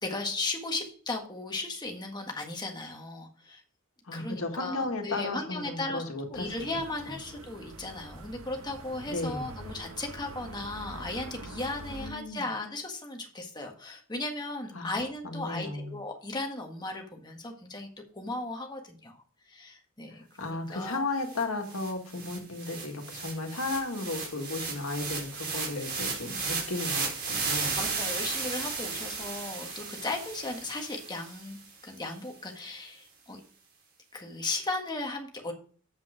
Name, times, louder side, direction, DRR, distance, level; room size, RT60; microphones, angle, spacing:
voice 1, 0.0-3.6 4.1-6.0 6.3-17.9 18.1-19.2 19.5-21.1 27.7-33.4 34.1-35.5, left 2 dB, 20° left, 2 dB, 1.6 m, -36 dB
voice 2, 4.1-6.8 7.1-7.2 9.1-9.5 12.0-12.4 14.7-15.0 15.2-16.0 20.4-27.8, left 2 dB, 80° left, 3 dB, 1.9 m, -34 dB
sound 1, 6.3-12.1, right 1 dB, 85° right, 1.2 m, -45 dB
sound 2, 20.9-21.0 21.3-31.6, right 4 dB, 50° right, 3.8 m, -35 dB
8.1 x 7.3 x 5.0 m, 0.43 s
head